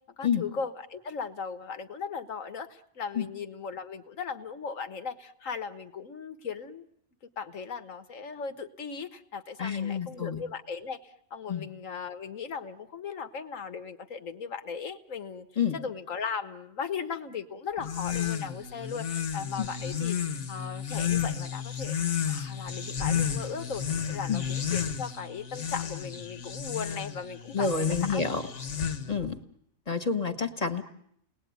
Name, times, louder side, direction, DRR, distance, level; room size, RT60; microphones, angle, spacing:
voice 1, 0.2-6.9 7.4-15.5 15.7-20.2 20.5-22.0 22.3-28.4, left 6 dB, 80° left, 9 dB, 1.7 m, -37 dB
voice 2, 9.6-10.4 11.5-11.6 15.6-15.8 19.6-19.7 24.3-24.5 27.5-28.4 29.1-29.3 29.9-30.8, left 5 dB, 30° left, 7 dB, 1.6 m, -28 dB
sound 1, 17.8-29.3, left 8 dB, 65° left, 1.6 m, -32 dB
30.0 x 19.5 x 9.5 m, 0.76 s
omnidirectional pair, 1.3 m